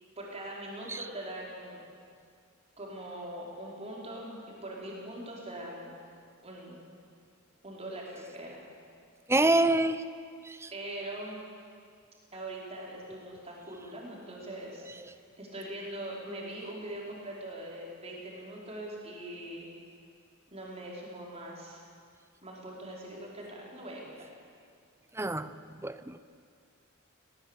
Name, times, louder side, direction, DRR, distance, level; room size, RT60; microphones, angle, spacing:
voice 1, 0.2-1.8 2.8-6.0 6.4-6.8 7.6-8.6 10.7-11.4 12.3-14.9 15.4-19.7 20.5-21.8 22.4-24.3, right 1 dB, 30° right, -3 dB, 4.9 m, -42 dB
voice 2, 9.3-10.0 10.4-10.7 25.1-26.2, right 2 dB, 10° right, 13 dB, 0.7 m, -27 dB
19.5 x 17.5 x 8.4 m, 2.2 s
head